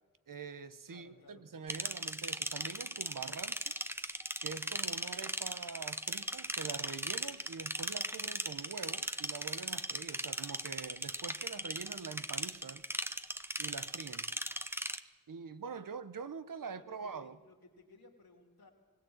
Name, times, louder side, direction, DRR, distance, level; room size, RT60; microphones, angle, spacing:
voice 1, 0.3-3.7 4.4-12.8 13.6-14.3 15.3-17.4, right 5 dB, 65° right, 1.0 m, -45 dB
voice 2, 0.9-1.5 15.8-15.9 16.6-18.7, left 2 dB, 90° left, 3.3 m, -60 dB
sound 1, 1.7-15.0, right 1 dB, 5° right, 0.9 m, -38 dB
21.0 x 17.0 x 8.0 m
cardioid pair, 55°, 35 cm